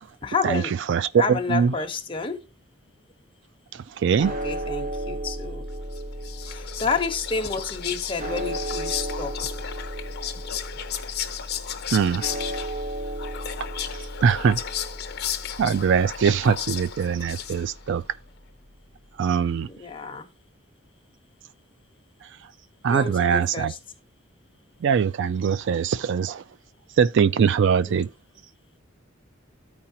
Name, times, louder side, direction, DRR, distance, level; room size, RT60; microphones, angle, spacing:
voice 1, 0.2-0.7 1.1-2.4 4.2-5.6 6.4-9.3 19.7-20.3 22.9-23.8 27.9-28.0, left 4 dB, 25° left, 1.1 m, -30 dB
voice 2, 0.9-1.7 3.7-4.4 11.9-12.3 14.2-14.6 15.6-18.0 19.2-19.7 22.2-22.3 22.8-23.7 24.8-26.4 27.0-28.1, right 7 dB, 60° right, 0.3 m, -22 dB
sound 1, 4.2-18.4, right 1 dB, 40° right, 0.9 m, -35 dB
Whispering, 5.9-17.9, left 9 dB, 55° left, 0.9 m, -34 dB
14.0 x 4.8 x 2.8 m
head